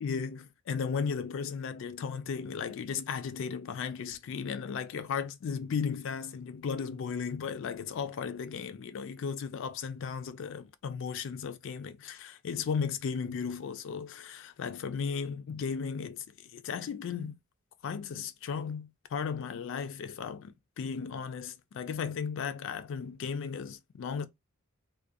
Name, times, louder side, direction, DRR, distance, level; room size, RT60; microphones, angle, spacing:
voice 1, 0.0-17.4 17.8-24.3, left 6 dB, 60° left, 0.3 m, -35 dB
2.4 x 2.2 x 2.6 m
head